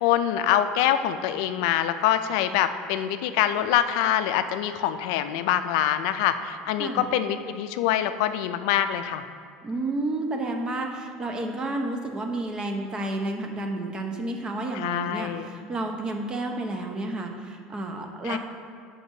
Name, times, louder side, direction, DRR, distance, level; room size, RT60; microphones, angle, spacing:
voice 1, 0.0-9.2 14.7-15.5 18.2-18.4, left 11 dB, 80° left, 10 dB, 0.3 m, -25 dB
voice 2, 6.8-7.1 9.6-18.4, right 2 dB, 25° right, 3 dB, 0.7 m, -31 dB
7.7 x 5.9 x 2.7 m, 2.3 s
supercardioid pair, 115°, 3 cm